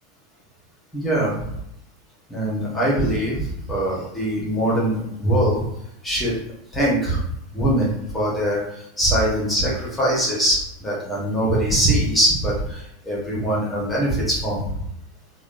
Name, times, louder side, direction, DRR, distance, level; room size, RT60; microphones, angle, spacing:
voice 1, 0.9-1.5 2.3-5.6 6.0-6.3 6.7-7.2 7.5-14.6, right 1 dB, 10° left, -6 dB, 1.1 m, -22 dB
3.3 x 2.3 x 2.5 m, 0.79 s
hypercardioid pair, 90°, 0 cm